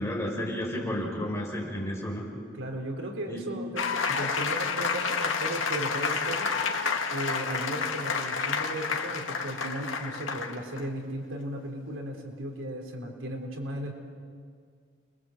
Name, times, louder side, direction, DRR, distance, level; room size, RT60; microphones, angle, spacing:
voice 1, 0.0-2.3 3.3-3.5, equal, 15° left, -2 dB, 5.4 m, -32 dB
voice 2, 2.5-6.5 7.1-13.9, right 1 dB, 80° right, 2 dB, 3.6 m, -36 dB
sound 1, 3.7-10.8, left 5 dB, 80° left, 2.0 m, -30 dB
30.0 x 21.5 x 7.9 m, 2.1 s
head